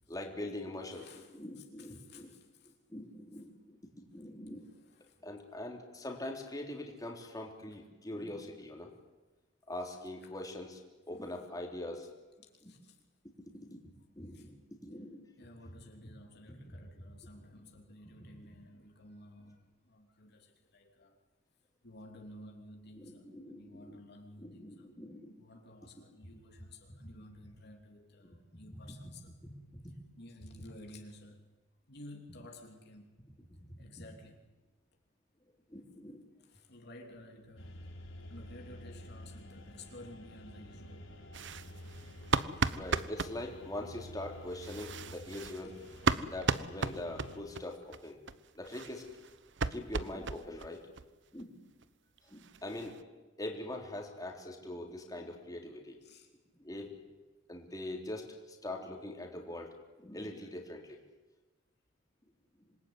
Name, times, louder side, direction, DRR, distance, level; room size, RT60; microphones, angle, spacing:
voice 1, 0.1-2.3 2.9-4.6 5.2-8.9 9.7-10.8 11.1-12.1 12.6-12.7 13.7-13.8 14.2-15.2 16.7-16.8 18.2-18.6 23.0-24.0 24.4-25.5 27.0-27.1 28.5-29.0 29.4-29.9 33.4-34.0 35.7-36.2 42.7-45.8 46.2-48.2 48.6-49.1 49.7-50.8 51.3-51.5 52.2-53.0 53.4-56.0 56.6-56.9 57.5-60.8, left 1 dB, 20° left, 1 dB, 3.6 m, -43 dB
voice 2, 0.9-1.3 1.6-2.7 5.0-5.2 12.6-13.0 14.3-14.5 15.4-21.1 21.8-24.9 25.4-29.3 30.2-31.5 31.9-33.1 33.8-34.4 36.4-37.9 38.3-41.2 42.3-42.7 56.0-56.3, left 1 dB, 60° left, 2 dB, 3.1 m, -53 dB
sound 1, 37.6-47.4, left 1 dB, 80° left, 4.7 m, -50 dB
sound 2, 41.3-43.4 44.5-47.6 47.9-48.0 48.3-48.4 48.7-50.7 51.0-51.1 51.4-51.5 51.8-51.9 52.2-53.0, right 4 dB, 65° right, 1.0 m, -35 dB
26.5 x 20.0 x 9.7 m, 1.1 s
head